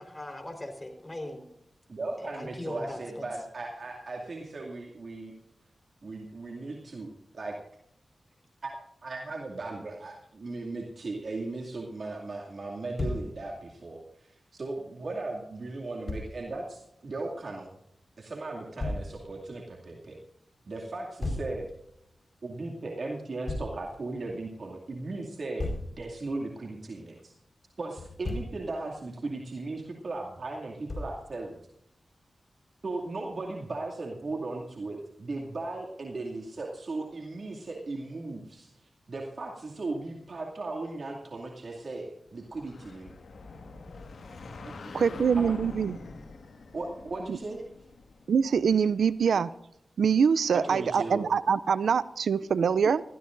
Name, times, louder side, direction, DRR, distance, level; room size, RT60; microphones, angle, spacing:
voice 1, 0.0-1.5 2.2-3.2, left 1 dB, 25° left, 6 dB, 4.1 m, -40 dB
voice 2, 1.9-5.3 6.0-7.6 8.6-8.8 9.0-17.7 18.2-20.2 20.7-21.7 22.4-27.3 27.8-31.6 32.8-38.7 39.1-43.1 44.6-45.5 46.7-47.6 50.5-51.3, right 2 dB, 65° right, 0 dB, 2.4 m, -37 dB
Thump thud, 13.0-13.3 16.1-16.3 18.8-19.1 21.2-21.5 23.5-23.7 25.6-25.9 28.0-28.6 30.9-31.2, left 2 dB, 55° left, 4.6 m, -33 dB
sound 1, 42.4-49.0, left 3 dB, 75° left, 1.7 m, -44 dB
voice 3, 44.9-46.0 47.3-47.4 48.3-49.5 50.0-53.0, right 6 dB, 85° right, 16 dB, 0.4 m, -24 dB
20.0 x 15.5 x 2.6 m, 0.78 s
cardioid pair, 45°, 0 cm